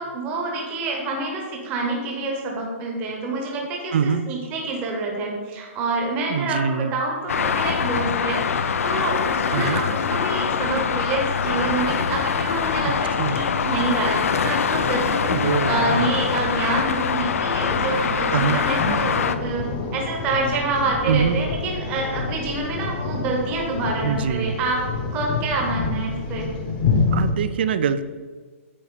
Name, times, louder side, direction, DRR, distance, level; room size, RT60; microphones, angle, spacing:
voice 1, 0.0-19.7 19.9-24.8 25.1-26.5, right 3 dB, 20° right, 0 dB, 0.9 m, -27 dB
voice 2, 3.9-4.3 6.3-6.9 9.5-9.8 13.2-13.4 15.3-15.9 18.3-18.6 21.1-21.5 24.0-24.6 27.1-28.0, right 6 dB, 50° right, 13 dB, 0.4 m, -23 dB
Traffic noise roadway noise, 7.3-19.4, left 6 dB, 90° left, 0.4 m, -24 dB
sound 1, 11.4-27.3, left 4 dB, 30° left, 0.8 m, -29 dB
8.4 x 2.9 x 4.7 m, 1.5 s
hypercardioid pair, 170°, 7 cm